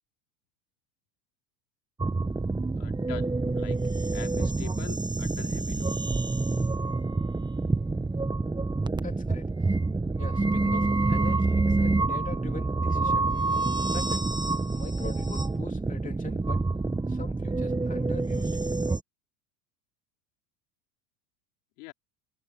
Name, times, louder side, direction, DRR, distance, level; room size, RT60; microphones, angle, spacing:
sound 1, 2.0-19.0, right 3 dB, 10° right, 1.4 m, -27 dB
voice 1, 2.8-3.8 4.1-5.9 21.8-21.9, left 27 dB, 65° left, 4.7 m, -44 dB
voice 2, 9.0-9.8 10.2-13.4 13.9-14.3 14.7-16.6 17.1-18.5, left 4 dB, 15° left, 3.1 m, -42 dB
hypercardioid pair, 90°, 49 cm